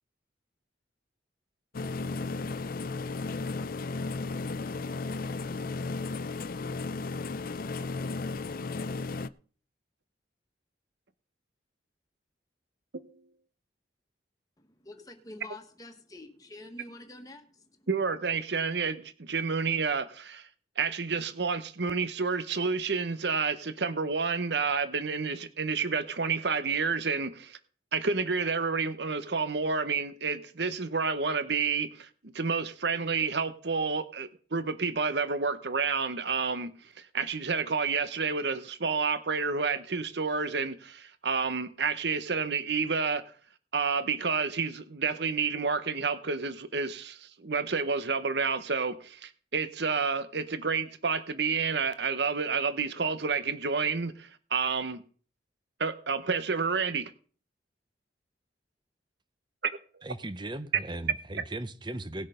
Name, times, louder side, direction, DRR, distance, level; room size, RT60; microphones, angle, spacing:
sound 1, 1.7-9.3, left 3 dB, 50° left, 0.5 m, -34 dB
voice 1, 14.6-17.9, left 2 dB, 20° left, 1.5 m, -47 dB
voice 2, 17.9-20.5 20.8-27.6 27.9-32.1 32.3-36.7 37.1-43.2 43.7-55.0 55.8-57.1, right 5 dB, 65° right, 1.0 m, -29 dB
voice 3, 60.0-62.3, right 1 dB, 25° right, 0.8 m, -37 dB
18.5 x 6.5 x 5.1 m
head